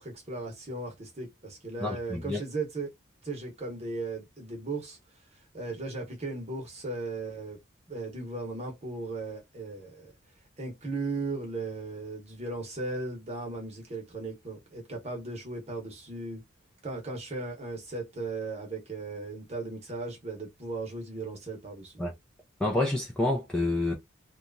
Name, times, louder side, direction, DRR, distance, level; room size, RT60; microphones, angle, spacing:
voice 1, 0.0-2.9 3.2-5.0 5.5-7.6 7.9-10.1 10.6-16.4 16.8-21.9, right 3 dB, 35° right, 1.0 m, -36 dB
voice 2, 1.8-2.4 22.0-22.1 22.6-23.9, left 2 dB, 5° left, 0.5 m, -28 dB
2.8 x 2.3 x 2.6 m
head